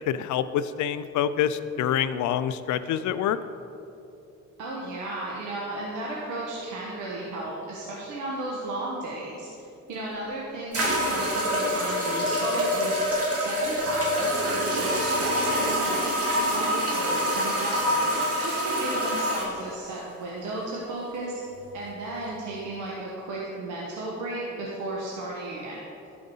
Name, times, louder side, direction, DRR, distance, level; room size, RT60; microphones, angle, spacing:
voice 1, 0.0-3.4, left 9 dB, 75° left, 13 dB, 0.5 m, -26 dB
voice 2, 4.6-21.4 21.7-25.8, right 2 dB, 90° right, -4 dB, 1.3 m, -34 dB
sound 1, 9.9-10.0 10.7-19.5, equal, 50° right, 2.2 m, -26 dB
12.0 x 5.0 x 5.5 m, 2.9 s
cardioid pair, 90°, 30 cm